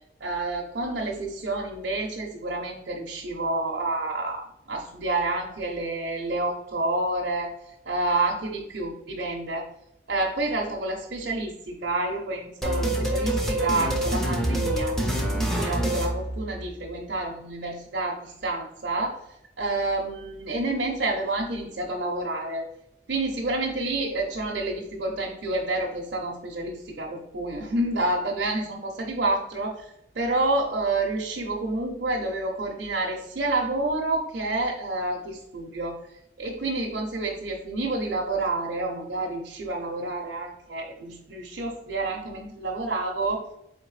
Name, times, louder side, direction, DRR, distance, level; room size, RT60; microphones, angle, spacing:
voice 1, 0.2-4.4 4.7-9.7 10.1-19.1 19.6-22.7 23.1-36.0 36.4-43.4, right 2 dB, 65° right, -2 dB, 0.6 m, -29 dB
sound 1, 12.6-16.9, right 1 dB, ahead, 0.5 m, -26 dB
4.2 x 3.5 x 3.1 m, 0.78 s
head